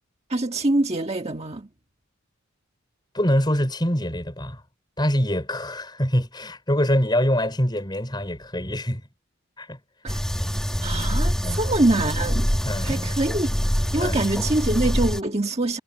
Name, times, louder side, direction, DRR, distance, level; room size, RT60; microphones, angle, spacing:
voice 1, 0.3-1.7 10.0-10.2 10.8-12.5 12.8-13.6 13.9-15.8, right 2 dB, 30° right, 1.5 m, -24 dB
voice 2, 3.1-4.6 5.0-9.0 9.6-9.8 11.4-11.6 12.6-13.1 14.0-14.2, equal, 20° left, 5.4 m, -24 dB
sound 1, 10.1-15.2, equal, 5° left, 1.2 m, -25 dB
head